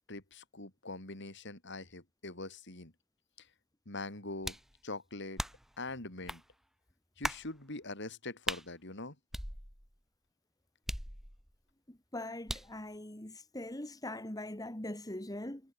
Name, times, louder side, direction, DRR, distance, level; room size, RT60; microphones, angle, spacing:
voice 1, 0.1-2.9 3.4-3.5 3.9-4.6 4.8-5.4 5.8-6.4 7.2-9.2, left 2 dB, 60° left, 4.8 m, -43 dB
sound 1, 4.4-4.7 5.4-5.7 6.3-6.4 7.2-7.5 8.5-8.6 9.3-10.0 10.9-11.5 12.5-12.8, equal, ahead, 4.8 m, -38 dB
voice 2, 11.9-15.6, left 1 dB, 20° left, 2.2 m, -42 dB
head